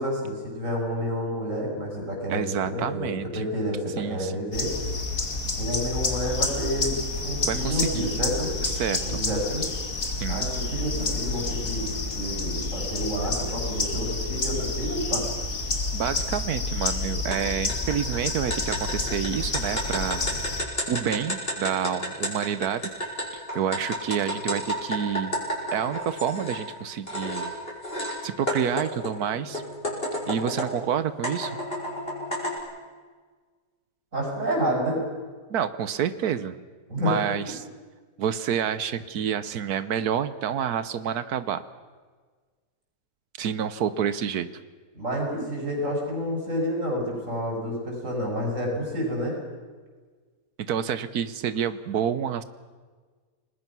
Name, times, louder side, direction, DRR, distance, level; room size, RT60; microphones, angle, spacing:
voice 1, 0.0-4.7 5.6-8.5 9.0-9.6 10.3-11.9 12.1-15.3 34.1-35.0 36.9-37.2 44.9-49.4, equal, 55° right, 0 dB, 7.7 m, -29 dB
voice 2, 2.3-3.5 4.0-4.6 7.4-8.2 8.6-9.2 10.2-10.5 15.9-20.3 20.6-22.9 23.3-25.4 25.7-27.5 28.2-29.6 30.3-31.6 35.5-36.6 37.0-37.6 38.2-41.6 43.4-44.5 50.7-52.4, right 8 dB, 90° right, 13 dB, 1.4 m, -28 dB
sound 1, 4.5-20.6, left 3 dB, 65° left, 2.8 m, -29 dB
sound 2, 17.3-17.4 17.7-26.6 27.1-28.2 28.5-30.8 31.2-32.6, equal, 40° left, 6.0 m, -31 dB
30.0 x 20.0 x 6.1 m, 1.5 s
omnidirectional pair, 1.6 m